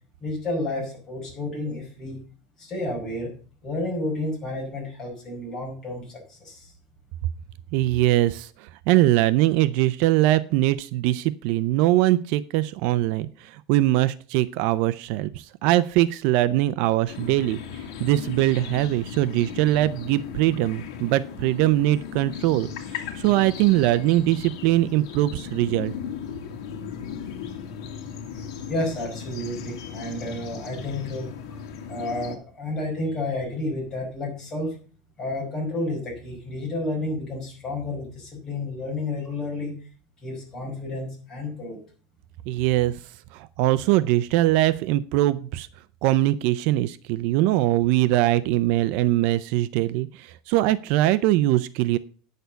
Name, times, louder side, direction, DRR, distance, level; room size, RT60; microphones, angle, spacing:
voice 1, 0.2-2.2 2.6-3.3 3.6-6.7 28.7-31.6 31.9-34.8 35.2-39.7 40.2-41.8, left 2 dB, 20° left, -2 dB, 5.2 m, -31 dB
voice 2, 7.7-25.9 42.5-43.0 43.3-45.7 46.0-52.0, right 15 dB, 50° right, 14 dB, 0.5 m, -22 dB
sound 1, 17.1-32.3, left 7 dB, 70° left, 2.1 m, -37 dB
9.3 x 6.6 x 6.8 m, 0.41 s
supercardioid pair, 165°, 3 cm